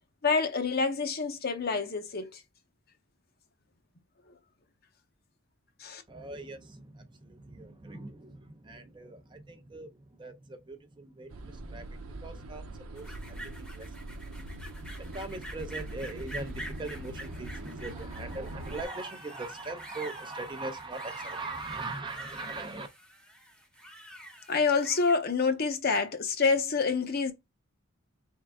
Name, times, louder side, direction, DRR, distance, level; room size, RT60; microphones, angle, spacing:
voice 1, 0.2-2.4 5.8-6.0 24.5-27.3, left 4 dB, 45° left, 0.8 m, -27 dB
voice 2, 6.1-13.9 14.8-22.9, right 2 dB, 20° right, 0.6 m, -41 dB
sound 1, 11.3-18.8, right 1 dB, 85° right, 0.8 m, -42 dB
sound 2, 13.0-25.2, right 1 dB, 5° left, 0.9 m, -46 dB
3.7 x 3.3 x 3.5 m
head